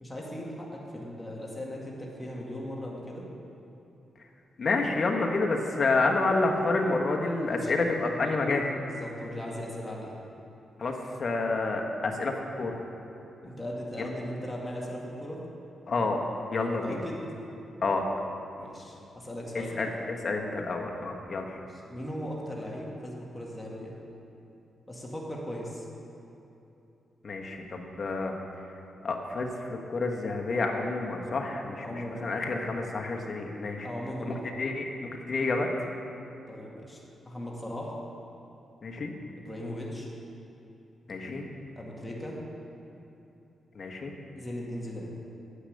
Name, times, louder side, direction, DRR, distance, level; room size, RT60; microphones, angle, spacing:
voice 1, 0.0-3.3 7.4-7.7 8.1-8.4 8.8-10.2 13.4-15.4 16.8-17.2 18.6-19.9 21.5-21.6 21.9-23.9 24.9-25.8 31.8-32.3 33.8-34.5 36.5-37.9 39.4-40.1 41.8-42.4 44.4-45.1, equal, 10° left, -3 dB, 2.1 m, -38 dB
voice 2, 4.6-8.6 10.8-12.8 14.0-14.1 15.9-16.2 16.5-17.0 17.8-18.1 19.8-21.6 27.2-28.4 29.0-33.9 34.2-34.8 35.2-35.9 38.8-39.1 41.1-41.5 43.7-44.2, left 3 dB, 50° left, 1 dB, 1.3 m, -29 dB
9.9 x 8.3 x 6.6 m, 2.9 s
cardioid pair, 85°, 0 cm